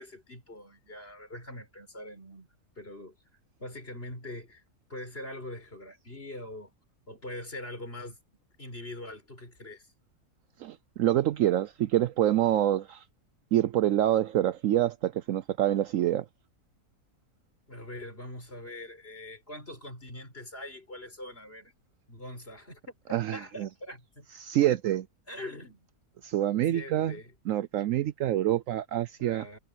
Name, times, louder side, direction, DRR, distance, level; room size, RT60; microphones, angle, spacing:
voice 1, 0.0-2.5 2.8-3.1 3.6-4.6 4.9-6.7 7.1-8.2 8.6-9.9 17.7-21.7 22.1-22.8 23.3-24.3 25.3-25.9 26.7-27.3 29.2-29.6, left 1 dB, 40° left, 6.1 m, -43 dB
voice 2, 10.6-13.0 13.5-16.3 23.1-23.7 24.4-25.1 26.2-27.2 27.5-29.6, right 12 dB, 70° right, 0.9 m, -26 dB
omnidirectional pair, 1.6 m